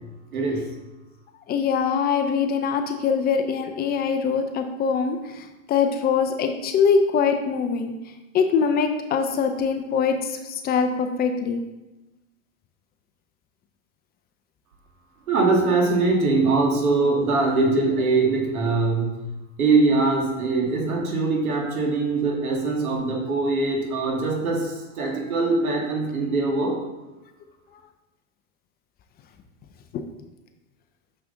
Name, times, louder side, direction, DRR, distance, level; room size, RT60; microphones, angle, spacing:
voice 1, 1.5-7.9 8.3-11.6 29.9-30.0, left 6 dB, 25° left, 6 dB, 0.5 m, -23 dB
voice 2, 15.3-19.2 19.6-26.7, right 3 dB, 85° right, 0 dB, 1.9 m, -22 dB
6.4 x 5.5 x 3.8 m, 1.0 s
hypercardioid pair, 115°, 42 cm